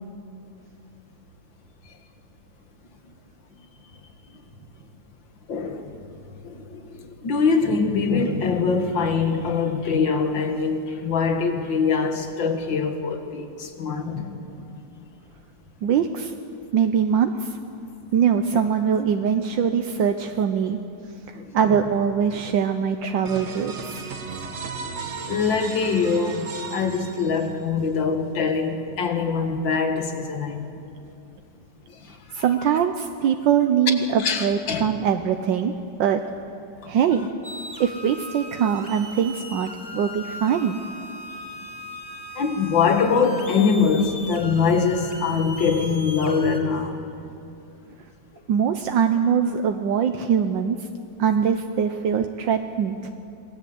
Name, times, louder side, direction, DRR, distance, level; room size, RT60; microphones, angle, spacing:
voice 1, 5.5-5.9 6.4-14.4 21.4-21.5 25.3-30.7 32.0-32.4 34.2-34.9 36.8-36.9 42.4-47.0, left 5 dB, 80° left, 6 dB, 2.5 m, -23 dB
voice 2, 15.8-16.3 16.7-17.6 18.1-20.8 21.3-24.0 32.3-35.7 36.0-36.2 36.9-37.3 37.8-40.8 48.5-50.9 51.2-53.1, right 7 dB, 80° right, 6 dB, 1.5 m, -22 dB
sound 1, 23.3-27.9, right 4 dB, 40° right, 1.4 m, -35 dB
sound 2, 37.4-46.6, left 1 dB, 10° right, 3.1 m, -39 dB
26.5 x 20.0 x 7.9 m, 2.6 s
omnidirectional pair, 2.0 m